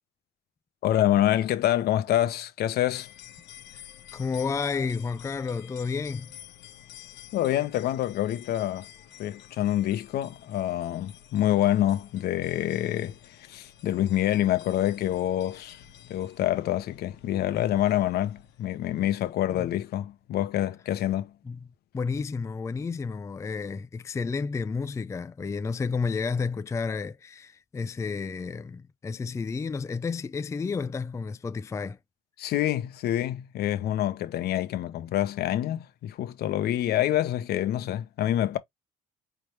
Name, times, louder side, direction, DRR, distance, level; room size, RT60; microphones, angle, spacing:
voice 1, 0.8-3.1 7.3-8.9 9.2-13.1 13.5-15.8 16.1-21.3 32.4-38.6, left 12 dB, 70° left, 1.0 m, -26 dB
sound 1, 2.9-19.4, left 11 dB, 85° left, 1.3 m, -50 dB
voice 2, 4.1-6.4 19.5-19.7 21.5-21.7 21.9-32.0, left 5 dB, 15° left, 0.4 m, -31 dB
4.5 x 3.5 x 3.2 m
cardioid pair, 110°, 17 cm